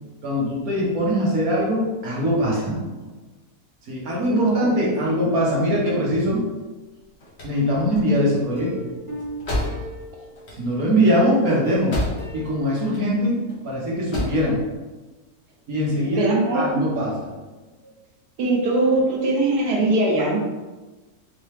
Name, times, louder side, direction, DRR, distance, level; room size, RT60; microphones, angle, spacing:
voice 1, 0.2-2.7 3.9-6.4 7.4-8.7 10.6-12.0 12.3-14.6 15.7-17.1, equal, 65° right, -5 dB, 1.6 m, -22 dB
voice 2, 4.3-5.0 16.0-16.6 18.4-20.4, right 2 dB, 85° right, -2 dB, 1.5 m, -21 dB
sound 1, 6.9-12.5 12.8-13.6 13.9-14.5, left 1 dB, 45° left, 1.3 m, -31 dB
Plucked string instrument, 8.6-10.5 11.2-14.0 14.3-14.4 14.7-14.8, right 1 dB, 20° right, 1.1 m, -38 dB
4.6 x 2.9 x 3.3 m, 1.2 s
omnidirectional pair, 1.6 m